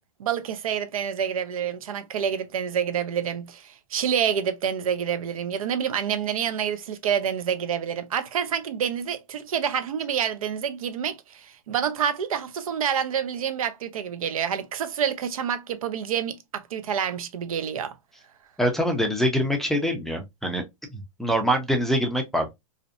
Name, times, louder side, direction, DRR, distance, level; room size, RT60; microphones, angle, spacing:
voice 1, 0.2-17.9, right 8 dB, 85° right, 0.5 m, -28 dB
voice 2, 18.6-20.6 20.9-22.5, equal, ahead, 0.4 m, -24 dB
2.5 x 2.1 x 2.4 m
hypercardioid pair, 135°, 18 cm